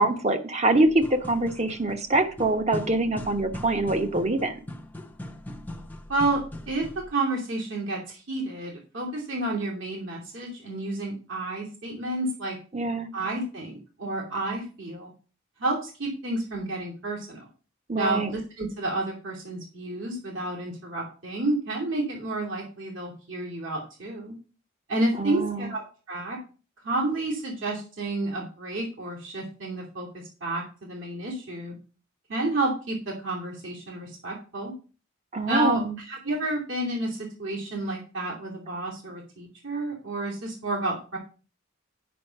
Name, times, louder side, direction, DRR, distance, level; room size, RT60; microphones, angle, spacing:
voice 1, 0.0-4.6 12.7-13.1 17.9-18.3 25.2-25.7 35.3-36.0, right 2 dB, 30° right, 7 dB, 1.1 m, -24 dB
sound 1, 0.9-7.1, left 1 dB, 10° left, 0.7 m, -40 dB
voice 2, 6.1-6.8 7.1-12.6 13.1-15.1 15.6-17.5 17.9-24.3 24.9-25.8 26.1-26.4 26.8-31.7 32.3-34.7 35.5-41.2, right 2 dB, 65° right, -2 dB, 2.8 m, -30 dB
9.1 x 5.8 x 5.3 m, 0.36 s
head